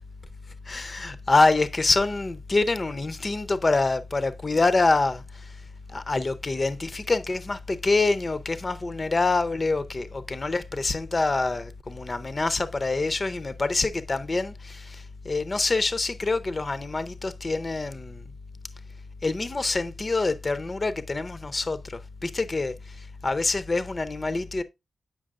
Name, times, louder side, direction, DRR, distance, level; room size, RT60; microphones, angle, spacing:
voice 1, 0.7-5.5 5.9-18.2 19.2-24.6, left 3 dB, 30° left, 0.5 m, -26 dB
8.6 x 5.8 x 2.4 m
wide cardioid pair, 165°, 0 cm